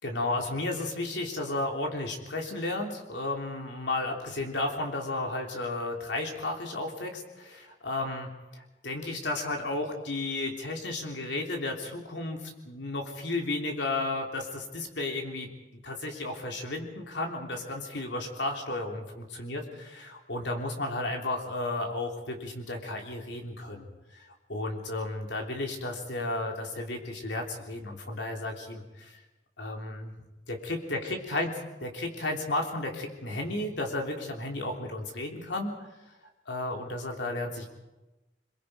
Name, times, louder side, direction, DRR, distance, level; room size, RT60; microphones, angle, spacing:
voice 1, 0.0-12.4 12.7-15.5 15.8-19.6 20.1-23.9 24.1-29.1 29.6-30.1 30.5-31.5 31.8-35.9 36.5-37.7, left 2 dB, 75° left, 2 dB, 3.4 m, -33 dB
26.0 x 22.5 x 5.1 m, 1.1 s
head